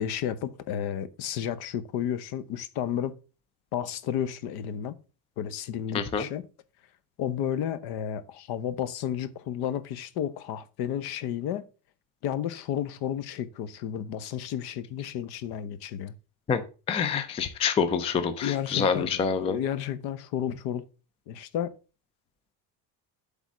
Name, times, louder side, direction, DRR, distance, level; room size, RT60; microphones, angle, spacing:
voice 1, 0.0-3.2 3.7-5.0 5.4-6.4 7.2-11.6 12.2-16.1 18.4-20.8 21.3-21.8, left 9 dB, 65° left, 0.8 m, -32 dB
voice 2, 5.9-6.2 16.5-16.6 16.9-19.6, left 6 dB, 15° left, 0.4 m, -26 dB
8.2 x 3.6 x 6.1 m
cardioid pair, 170°, 42 cm